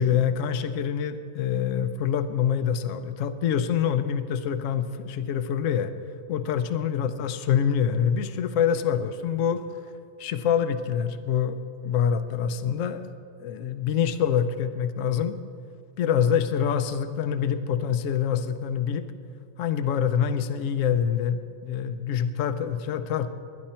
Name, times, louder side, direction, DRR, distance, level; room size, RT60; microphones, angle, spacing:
voice 1, 0.0-5.9 6.3-9.6 10.2-13.1 13.4-15.4 16.0-19.0 19.6-23.3, left 8 dB, 70° left, 10 dB, 1.0 m, -25 dB
21.0 x 10.5 x 4.4 m, 2.3 s
omnidirectional pair, 1.5 m